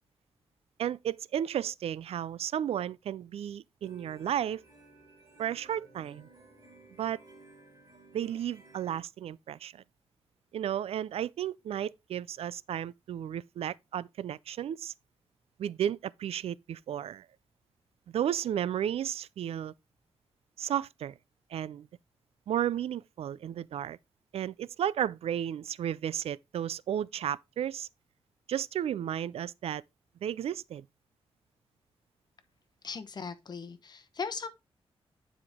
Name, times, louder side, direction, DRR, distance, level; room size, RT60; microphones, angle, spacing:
voice 1, 0.8-4.6 5.4-6.3 7.0-7.2 8.1-9.8 10.5-14.9 15.6-17.3 18.1-19.7 20.6-21.1 21.5-21.9 22.5-24.0 24.3-27.9 28.5-29.8 30.2-30.8, right 10 dB, 75° right, 0.4 m, -33 dB
sound 1, 3.8-9.0, right 3 dB, 35° right, 4.1 m, -56 dB
voice 2, 32.8-34.5, left 5 dB, 45° left, 0.9 m, -38 dB
9.6 x 5.1 x 3.5 m
wide cardioid pair, 140°, 10 cm